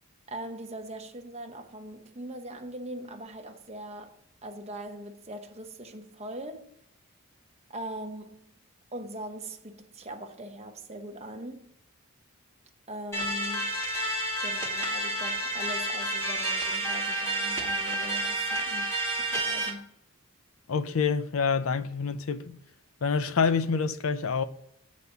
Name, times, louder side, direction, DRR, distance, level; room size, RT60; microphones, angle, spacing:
voice 1, 0.3-6.7 7.7-8.6 8.9-11.7 12.9-13.8 14.4-19.9, right 1 dB, 30° right, 0.9 m, -41 dB
sound 1, 13.1-19.7, right 1 dB, 15° left, 2.1 m, -30 dB
voice 2, 20.7-22.5 23.0-24.4, left 5 dB, 75° left, 0.5 m, -27 dB
8.2 x 4.1 x 7.0 m
head